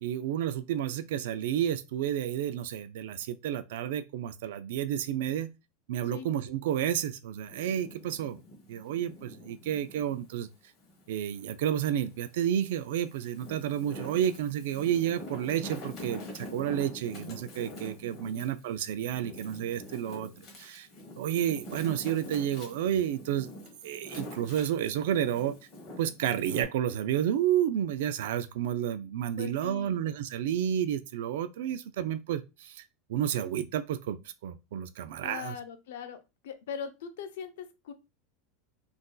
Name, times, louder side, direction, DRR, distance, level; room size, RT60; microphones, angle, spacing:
voice 1, 0.0-5.5 5.9-8.4 8.7-10.5 11.1-20.3 20.6-20.9 21.2-23.5 23.8-25.5 26.0-32.8 33.1-35.6, right 10 dB, 75° right, 0.3 m, -31 dB
Wind, 7.4-10.3 10.8-12.1 12.7-26.6, left 1 dB, 35° left, 1.1 m, -45 dB
voice 2, 29.4-29.9 35.2-36.2 36.4-37.9, left 7 dB, 85° left, 0.6 m, -40 dB
3.7 x 2.6 x 2.2 m
supercardioid pair, 165°, 0 cm